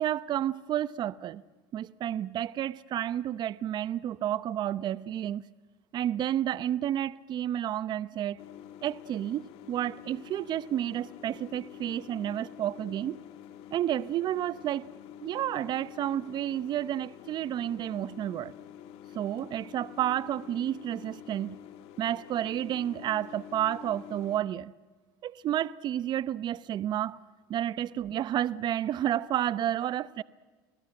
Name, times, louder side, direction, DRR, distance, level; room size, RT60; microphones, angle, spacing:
voice 1, 0.0-1.4 1.7-5.5 5.9-8.4 8.8-13.2 13.7-14.9 15.2-18.5 19.1-21.6 22.0-24.7 25.2-27.2 27.5-30.2, right 11 dB, 45° right, 0.7 m, -31 dB
sound 1, 8.4-24.4, left 10 dB, 65° left, 2.0 m, -48 dB
30.0 x 20.5 x 7.8 m
supercardioid pair, 105°, 11 cm